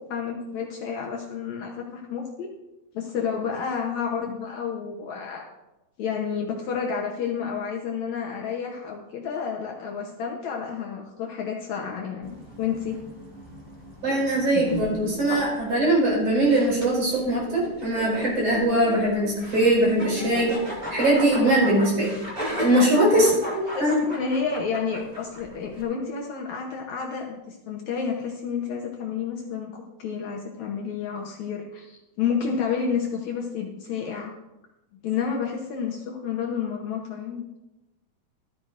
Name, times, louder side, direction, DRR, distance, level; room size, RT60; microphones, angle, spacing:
voice 1, 0.0-2.5 2.9-5.5 6.0-13.0 23.7-34.3 35.0-37.4, left 6 dB, 65° left, 0 dB, 2.1 m, -30 dB
sound 1, 12.2-25.8, equal, 15° right, 2.1 m, -34 dB
voice 2, 14.0-20.5 20.9-22.1 22.6-23.9, right 1 dB, 45° right, -4 dB, 5.8 m, -21 dB
14.0 x 13.0 x 2.6 m, 0.95 s
omnidirectional pair, 3.9 m